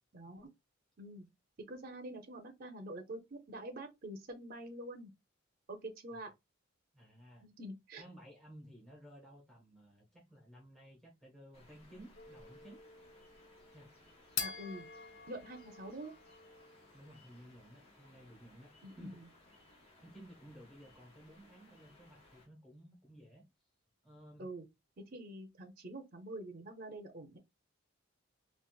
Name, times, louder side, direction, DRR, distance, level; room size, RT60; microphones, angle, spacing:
voice 1, 0.1-0.5 1.0-1.3 1.7-5.1 5.7-6.3 7.4-8.0 14.4-14.9 15.3-16.1 18.8-19.3 24.4-24.6 25.0-27.4, right 1 dB, 45° right, 0.6 m, -46 dB
voice 2, 6.9-7.5 8.0-12.8 13.7-13.9 16.9-19.2 20.0-23.5 24.0-24.5, equal, ahead, 1.1 m, -56 dB
sound 1, 11.5-22.5, left 1 dB, 30° left, 1.3 m, -63 dB
sound 2, 12.2-17.0, left 6 dB, 70° left, 0.7 m, -46 dB
3.9 x 2.4 x 2.3 m
head